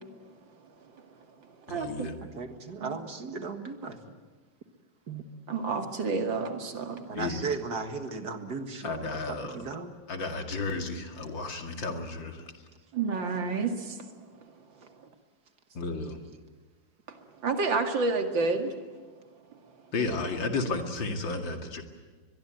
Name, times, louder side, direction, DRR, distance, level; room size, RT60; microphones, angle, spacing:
voice 1, 1.0-2.1 2.8-3.0 3.3-3.4 5.5-7.1 12.9-14.6 15.0-15.1 17.1-18.7 19.5-19.6, right 4 dB, 85° right, 5 dB, 2.9 m, -31 dB
voice 2, 1.7-2.1 7.1-7.5 8.8-9.6 10.1-12.4 15.7-16.2 19.9-21.8, left 3 dB, 85° left, 4 dB, 3.0 m, -33 dB
voice 3, 2.4-4.2 5.1-5.2 7.1-9.9 12.4-12.5, right 4 dB, 60° right, 7 dB, 2.3 m, -36 dB
23.5 x 21.5 x 9.1 m, 1.4 s
omnidirectional pair, 2.0 m